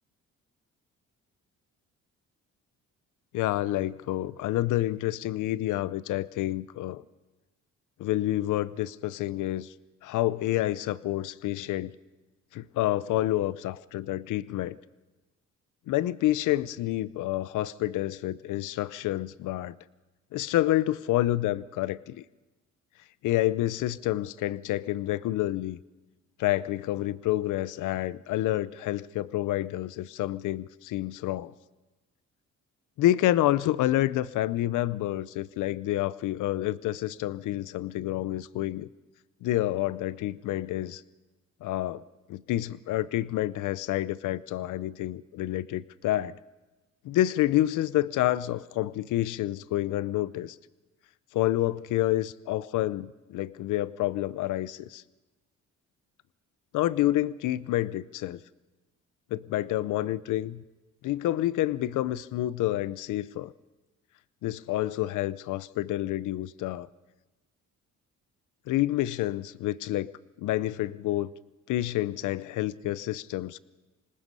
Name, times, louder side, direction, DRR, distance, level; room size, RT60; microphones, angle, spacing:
voice 1, 3.3-7.0 8.0-9.7 10.0-11.9 12.5-14.8 15.9-19.8 20.3-22.2 23.2-25.8 26.4-31.5 33.0-38.9 39.4-41.0 41.6-42.0 42.3-46.4 47.0-50.6 51.3-55.0 56.7-58.4 59.3-60.6 61.0-63.5 64.4-66.9 68.7-70.1 70.4-71.3 71.7-73.6, left 14 dB, 85° left, 17 dB, 0.7 m, -28 dB
26.5 x 19.5 x 5.5 m, 1.1 s
cardioid pair, 90°, 30 cm